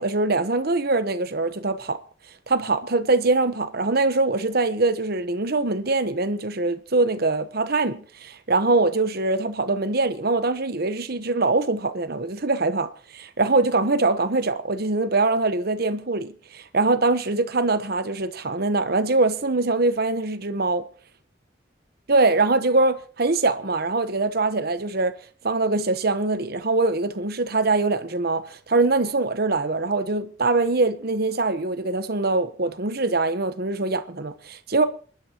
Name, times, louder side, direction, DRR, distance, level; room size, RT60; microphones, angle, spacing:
voice 1, 0.0-2.0 2.5-20.8 22.1-25.1 25.4-34.8, right 3 dB, 55° right, 1.1 m, -23 dB
28.5 x 12.0 x 3.0 m
head